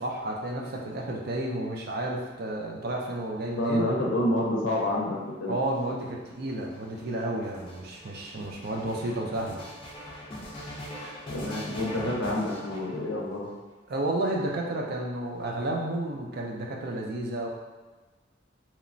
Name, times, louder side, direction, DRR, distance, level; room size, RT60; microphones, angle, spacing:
voice 1, 0.0-3.9 5.5-9.6 12.0-12.2 13.9-17.5, right 1 dB, 55° right, -1 dB, 0.4 m, -31 dB
voice 2, 3.6-5.6 11.3-13.5, left 1 dB, 85° left, -2 dB, 0.6 m, -28 dB
sound 1, 5.5-13.5 14.3-15.1, equal, 30° left, 0.4 m, -42 dB
2.9 x 2.1 x 2.5 m, 1.3 s
head